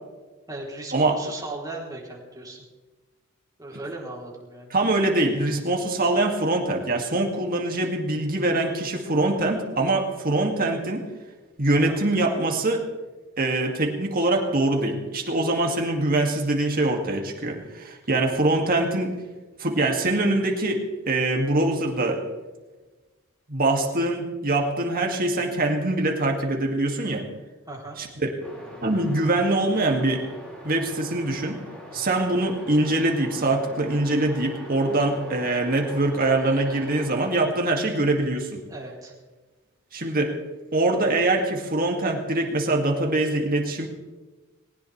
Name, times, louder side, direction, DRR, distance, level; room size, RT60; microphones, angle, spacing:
voice 1, 0.5-2.6 3.6-4.8 11.7-12.0 27.7-28.0 36.3-37.1 38.7-39.1, right 2 dB, 20° right, -2 dB, 3.6 m, -38 dB
voice 2, 4.7-11.1 11.6-12.8 13.4-19.1 19.6-22.2 23.5-27.2 28.0-28.3 28.8-30.2 30.6-31.6 31.9-38.6 39.9-40.3 40.7-43.9, right 2 dB, 45° right, 2 dB, 2.4 m, -23 dB
sound 1, 28.4-37.3, equal, 5° left, 5.2 m, -42 dB
20.0 x 18.5 x 3.4 m, 1.2 s
head